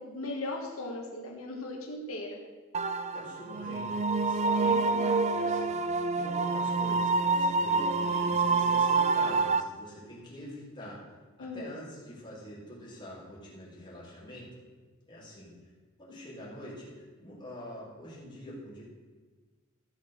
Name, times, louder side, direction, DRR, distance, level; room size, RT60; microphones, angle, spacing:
voice 1, 0.0-2.4 4.5-5.3 11.4-11.7, left 2 dB, 85° left, 0 dB, 1.7 m, -38 dB
sound 1, 2.7-9.6, right 4 dB, 30° right, 0.5 m, -27 dB
voice 2, 3.1-4.8 5.3-5.8 6.1-14.6 15.1-15.5 16.0-18.8, equal, 20° left, -6 dB, 4.3 m, -45 dB
15.0 x 6.3 x 6.5 m, 1.4 s
head